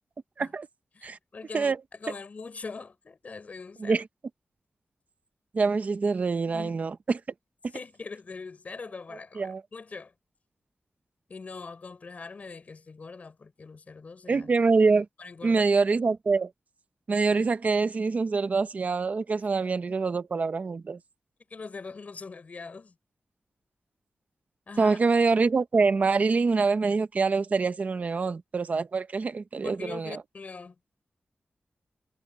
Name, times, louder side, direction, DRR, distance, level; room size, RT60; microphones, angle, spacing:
voice 1, 0.9-4.0 6.5-6.8 7.7-10.1 11.3-14.5 15.2-15.6 21.5-22.9 24.7-25.0 29.6-30.7, left 4 dB, 50° left, 4.6 m, -42 dB
voice 2, 5.5-7.2 9.4-9.6 14.3-15.1 15.4-16.5 17.1-21.0 24.8-30.2, right 4 dB, 50° right, 0.9 m, -25 dB
wide cardioid pair, 150°, 3 cm